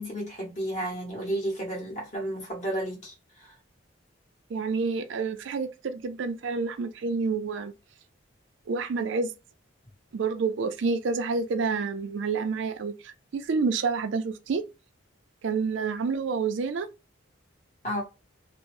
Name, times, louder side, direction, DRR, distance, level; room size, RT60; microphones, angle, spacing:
voice 1, 0.0-3.5 17.8-18.0, right 1 dB, 35° left, 1.2 m, -32 dB
voice 2, 4.5-7.7 8.7-9.3 10.1-14.6 15.4-16.9, right 4 dB, 65° right, 0.4 m, -28 dB
2.6 x 2.0 x 3.0 m
head